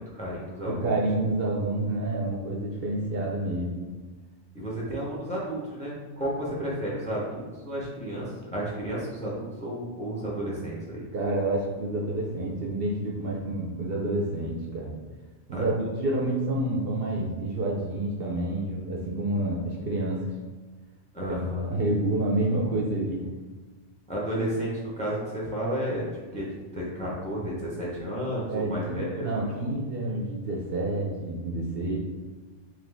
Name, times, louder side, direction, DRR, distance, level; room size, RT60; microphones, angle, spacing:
voice 1, 0.1-0.9 4.5-11.0 15.5-15.6 21.1-21.7 24.1-26.5 26.7-29.7, equal, 5° left, -4 dB, 0.7 m, -32 dB
voice 2, 0.7-4.0 11.1-14.9 15.5-20.3 21.2-21.3 21.7-23.3 28.5-32.0, right 2 dB, 60° right, -2 dB, 0.8 m, -28 dB
3.8 x 3.2 x 3.4 m, 1.3 s
omnidirectional pair, 1.2 m